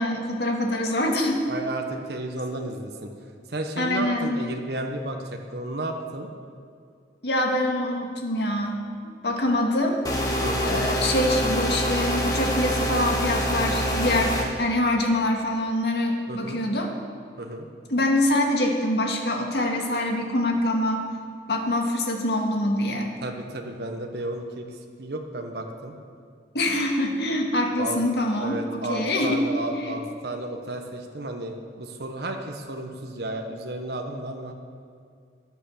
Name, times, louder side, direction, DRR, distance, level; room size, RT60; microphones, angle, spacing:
voice 1, 0.0-1.4 3.8-4.4 7.2-8.9 9.2-10.0 10.6-16.9 17.9-21.1 21.5-23.1 26.5-29.4 29.7-30.0, left 1 dB, 65° left, 2 dB, 2.0 m, -25 dB
voice 2, 1.5-3.1 3.5-6.3 10.4-10.8 12.8-12.9 13.5-14.2 16.3-16.6 17.4-17.7 23.2-24.7 25.0-25.9 27.8-28.0 28.4-34.5, right 1 dB, 60° right, 2 dB, 1.2 m, -33 dB
sound 1, 10.0-14.4, equal, 20° left, 1.9 m, -25 dB
14.5 x 10.5 x 7.1 m, 2.2 s
head